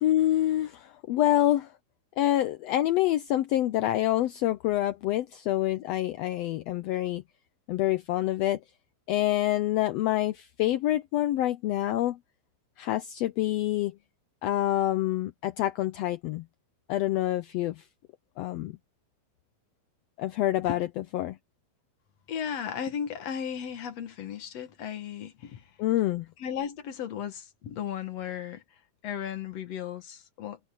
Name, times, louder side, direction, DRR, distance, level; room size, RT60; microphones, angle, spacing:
voice 1, 0.0-1.7 2.2-7.2 7.7-8.6 9.1-12.2 12.8-13.9 14.4-16.4 16.9-17.8 18.4-18.8 20.2-20.9 21.1-21.4 25.8-26.3, left 14 dB, 80° left, 1.5 m, -26 dB
voice 2, 22.3-25.7 26.4-28.6 29.0-30.6, left 8 dB, 60° left, 2.4 m, -35 dB
omnidirectional pair, 3.5 m